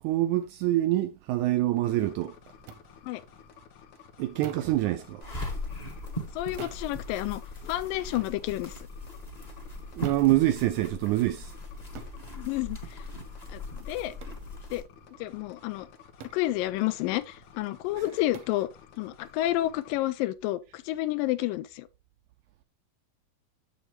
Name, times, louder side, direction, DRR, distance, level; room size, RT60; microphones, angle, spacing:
voice 1, 0.0-2.3 4.2-5.2 10.0-11.5, right 15 dB, 85° right, 1.7 m, -25 dB
sound 1, 1.9-20.0, left 8 dB, 65° left, 2.1 m, -53 dB
sound 2, 2.7-2.8 4.4-4.8 6.6-6.9 8.1-8.4 10.0-10.3 11.9-12.2 14.2-14.4 16.2-16.5 18.3-18.6, right 8 dB, 70° right, 1.7 m, -44 dB
sound 3, 5.2-14.8, left 1 dB, 25° left, 0.9 m, -39 dB
voice 2, 6.3-8.7 12.3-13.0 13.5-14.1 14.7-14.8 15.2-15.9 16.3-18.7 19.0-21.9, left 16 dB, 90° left, 2.3 m, -30 dB
7.8 x 7.3 x 3.1 m
omnidirectional pair, 3.9 m